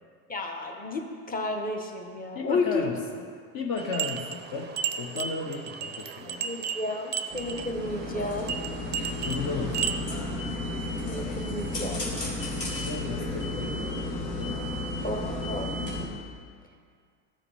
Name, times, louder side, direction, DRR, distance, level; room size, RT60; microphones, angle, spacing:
voice 1, 0.3-2.9 6.4-8.5 11.1-12.1 15.0-15.7, left 2 dB, 20° left, 3 dB, 1.1 m, -32 dB
voice 2, 2.3-3.2 3.5-6.4 9.2-10.0 12.7-14.0 14.4-14.8, left 4 dB, 45° left, 2 dB, 0.9 m, -34 dB
sound 1, 3.8-10.0, right 7 dB, 20° right, 0.5 m, -34 dB
sound 2, 7.3-16.1, left 1 dB, 85° left, 1.8 m, -33 dB
14.0 x 4.8 x 3.4 m, 2.1 s
hypercardioid pair, 75°, 48 cm